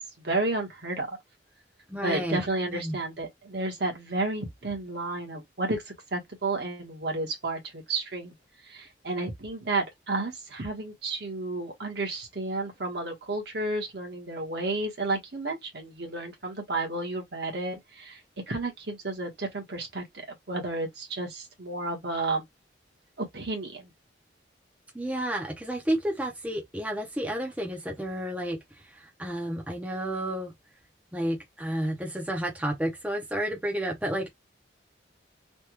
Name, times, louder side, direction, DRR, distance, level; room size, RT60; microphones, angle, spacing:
voice 1, 0.2-1.1 2.0-8.3 8.6-18.2 18.5-22.4 23.2-23.9, right 2 dB, 60° right, 1.2 m, -32 dB
voice 2, 1.9-3.0 24.9-28.6 28.8-30.5 31.1-34.3, right 1 dB, 10° right, 0.6 m, -31 dB
3.3 x 2.2 x 2.9 m
head